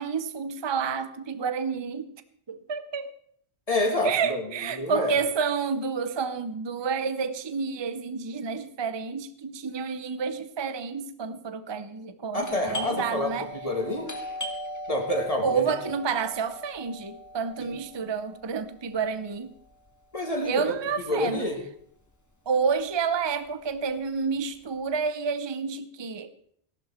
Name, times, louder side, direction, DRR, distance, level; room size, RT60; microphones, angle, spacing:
voice 1, 0.0-2.1 2.5-3.1 4.0-13.5 15.4-19.6 20.4-21.5 22.5-26.3, right 5 dB, 30° right, 0.6 m, -29 dB
voice 2, 3.7-4.4 4.7-5.1 12.3-13.3 13.6-14.1 14.9-15.6 20.1-20.7 21.1-21.6, left 1 dB, 35° left, 2.1 m, -27 dB
Doorbell, 12.4-21.8 22.1-22.2 22.8-23.1 23.5-24.8, equal, 15° left, 1.7 m, -40 dB
15.0 x 11.5 x 4.4 m
omnidirectional pair, 1.1 m